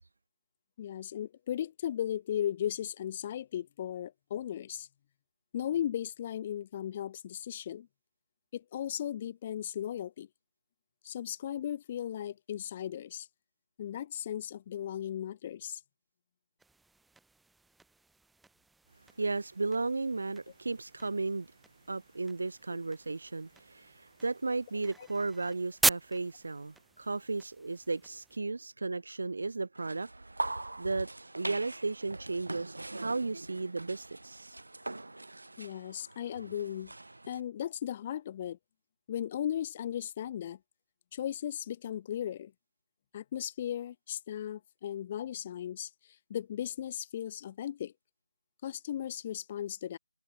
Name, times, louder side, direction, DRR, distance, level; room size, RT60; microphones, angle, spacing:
voice 1, 0.8-4.9 5.5-7.9 8.5-10.3 11.0-13.3 13.8-15.8 22.7-22.8 35.6-36.9 37.3-38.6 39.1-40.6 41.1-42.5 43.1-45.9 46.3-47.9 48.6-50.0, left 10 dB, 25° left, 0.6 m, -36 dB
sound 1, 16.6-28.4, right 3 dB, ahead, 1.3 m, -40 dB
voice 2, 19.2-21.5 21.9-30.1 30.8-31.1 31.3-34.6, right 3 dB, 65° right, 2.3 m, -34 dB
sound 2, 29.8-37.4, right 2 dB, 85° right, 1.1 m, -42 dB
figure-of-eight pair, 165°, 0 cm